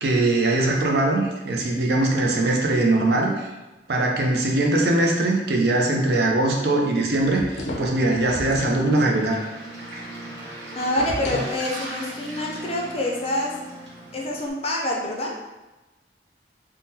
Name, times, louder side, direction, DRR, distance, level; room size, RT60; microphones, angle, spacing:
voice 1, 0.0-3.5 3.9-9.4, right 2 dB, 60° right, 0 dB, 0.5 m, -21 dB
sound 1, 7.2-8.8 10.9-11.6, left 1 dB, 90° left, 0.6 m, -32 dB
Waves surf, 8.5-14.5, right 1 dB, 85° right, 0.9 m, -40 dB
sound 2, 8.9-14.4, right 1 dB, 20° right, 1.1 m, -42 dB
voice 2, 10.7-13.5 14.1-15.3, left 1 dB, 35° left, -1 dB, 0.5 m, -26 dB
3.6 x 2.2 x 2.7 m, 1.1 s
head